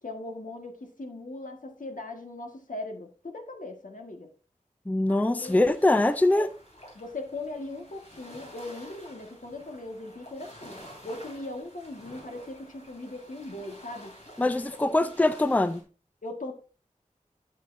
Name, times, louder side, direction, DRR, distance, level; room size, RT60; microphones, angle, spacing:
voice 1, 0.0-4.3 5.1-5.7 6.3-6.5 6.9-10.8 11.0-14.1 14.4-14.5 15.0-15.1 16.2-16.5, left 2 dB, 75° left, 1.6 m, -39 dB
voice 2, 4.9-6.5 14.4-15.8, left 2 dB, 10° left, 0.5 m, -23 dB
sound 1, 5.4-15.8, equal, 55° left, 3.3 m, -50 dB
11.5 x 6.7 x 2.6 m
wide cardioid pair, 50°, 14 cm